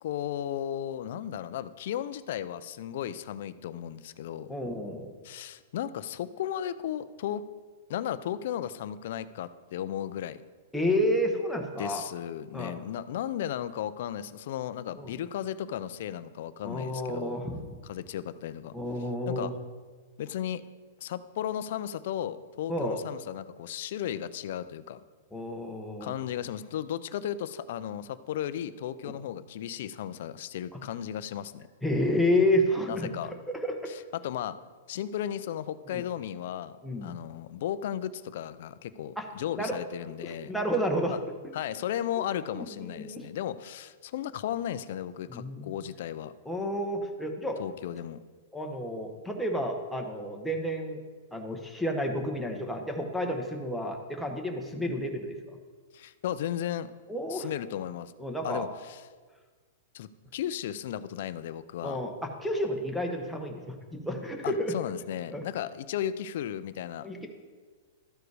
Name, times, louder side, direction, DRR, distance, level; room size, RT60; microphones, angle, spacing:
voice 1, 0.0-4.5 5.2-7.4 7.9-10.4 11.8-17.4 17.8-18.7 19.3-19.5 20.2-20.6 21.0-25.0 26.0-31.7 32.9-33.3 34.1-34.6 34.9-36.8 37.0-40.5 41.5-46.3 47.6-48.2 55.9-56.9 57.3-58.1 58.4-59.0 59.9-62.0 64.4-67.1, left 10 dB, 55° left, 14 dB, 0.4 m, -35 dB
voice 2, 4.5-5.1 10.7-12.0 12.5-12.8 15.0-15.2 16.6-17.6 18.7-19.5 22.7-23.0 25.3-26.2 29.0-29.1 30.7-30.8 31.8-33.2 33.5-33.9 35.9-36.0 36.8-37.2 39.2-39.3 39.6-39.8 40.1-41.2 41.4-41.5 42.5-43.2 45.3-45.7 46.5-47.6 48.5-51.0 51.3-55.4 57.1-57.5 58.2-58.6 61.8-64.7 65.3-65.4 67.0-67.3, equal, ahead, 1 dB, 0.9 m, -30 dB
13.0 x 5.0 x 4.7 m, 1.5 s
hypercardioid pair, 160°, 0 cm